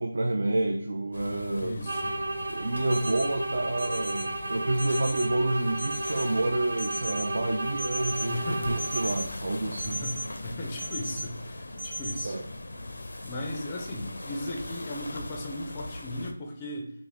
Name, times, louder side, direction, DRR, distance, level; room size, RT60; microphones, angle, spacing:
voice 1, 0.0-1.8 2.5-10.0 12.2-12.5, right 2 dB, 60° right, 3 dB, 0.5 m, -29 dB
sound 1, 1.1-16.3, left 1 dB, 85° left, 0.6 m, -40 dB
voice 2, 1.6-2.2 8.3-8.7 9.8-10.2 10.4-12.4 13.2-16.9, left 1 dB, 15° left, 0 dB, 0.4 m, -36 dB
sound 2, 1.8-9.3, right 2 dB, 80° right, 1.0 m, -34 dB
sound 3, 2.9-3.2 3.8-4.2 4.8-5.2 5.8-6.2 6.8-7.2 7.8-8.2 8.8-9.2 9.8-10.2 10.8-11.2 11.8-12.2, right 1 dB, 25° right, 0.7 m, -35 dB
5.8 x 2.0 x 3.4 m, 0.69 s
figure-of-eight pair, 175°, 0 cm